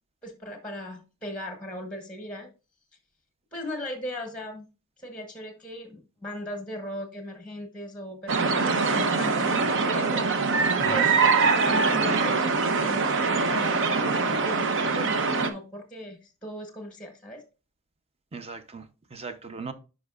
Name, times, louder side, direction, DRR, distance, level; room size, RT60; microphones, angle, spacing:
voice 1, 0.2-2.5 3.5-4.7 5.0-11.1 11.5-17.4, equal, 5° left, 1.1 m, -38 dB
sound 1, 8.3-15.5, right 4 dB, 60° right, 0.8 m, -23 dB
voice 2, 10.8-11.1 18.3-19.7, right 4 dB, 30° right, 0.7 m, -38 dB
10.0 x 5.3 x 2.4 m
head